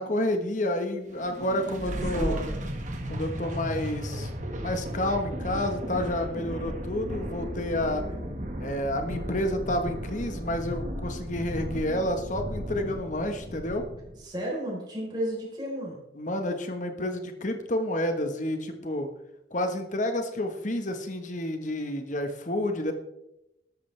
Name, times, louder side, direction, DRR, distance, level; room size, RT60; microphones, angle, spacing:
voice 1, 0.0-2.4 3.1-4.3 4.6-8.2 8.6-13.8 16.1-19.1 19.5-22.9, left 1 dB, 40° left, 6 dB, 1.4 m, -30 dB
sound 1, 1.1-14.2, equal, 40° right, 1.7 m, -35 dB
voice 2, 2.1-2.7 14.2-16.0, right 1 dB, 25° right, -4 dB, 4.2 m, -33 dB
13.0 x 12.5 x 3.4 m, 0.89 s
head